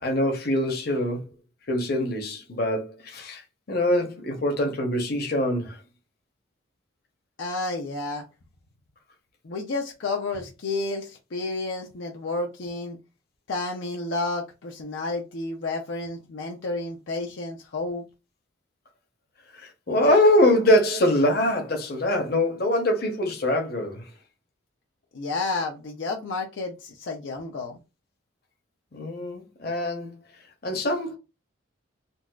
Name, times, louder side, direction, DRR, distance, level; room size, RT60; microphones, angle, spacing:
voice 1, 0.0-1.3 1.7-3.4 3.7-5.8 19.5-24.1 28.9-30.1 30.6-31.2, left 1 dB, 50° left, 0.8 m, -23 dB
voice 2, 7.4-8.2 9.4-13.0 13.5-18.0 25.1-27.8, left 3 dB, 75° left, 0.5 m, -31 dB
3.9 x 2.3 x 2.3 m
head